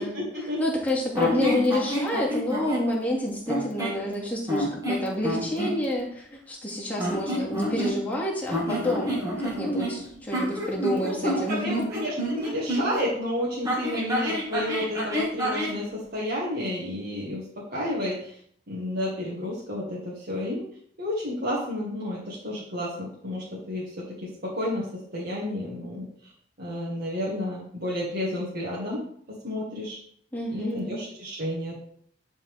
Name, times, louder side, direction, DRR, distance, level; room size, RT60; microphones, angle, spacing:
voice 1, 0.0-0.6 1.3-1.6 10.8-17.4 17.7-18.4 18.7-20.6 21.0-26.1 26.6-29.0 29.4-30.0 30.5-31.8, left 1 dB, 55° right, -6 dB, 1.9 m, -31 dB
voice 2, 0.6-11.9 30.3-31.0, left 1 dB, 10° left, -5 dB, 2.3 m, -28 dB
sound 1, 1.1-2.9 3.5-4.0 4.5-5.8 6.9-8.2 8.5-13.0 13.6-15.8, equal, 20° right, 2.0 m, -29 dB
10.5 x 4.3 x 3.6 m, 0.62 s
head